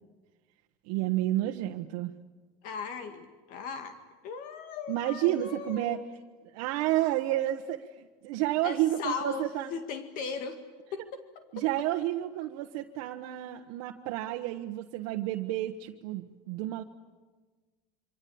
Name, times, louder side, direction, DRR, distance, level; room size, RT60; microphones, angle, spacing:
voice 1, 0.8-2.1 4.9-6.0 6.5-9.7 11.5-16.8, right 14 dB, 80° right, 3 dB, 1.3 m, -30 dB
voice 2, 2.6-4.0 4.2-6.1 8.6-10.6 10.9-11.7, left 5 dB, 55° left, 8 dB, 2.1 m, -38 dB
27.5 x 25.5 x 8.7 m, 1.3 s
cardioid pair, 160°, 17 cm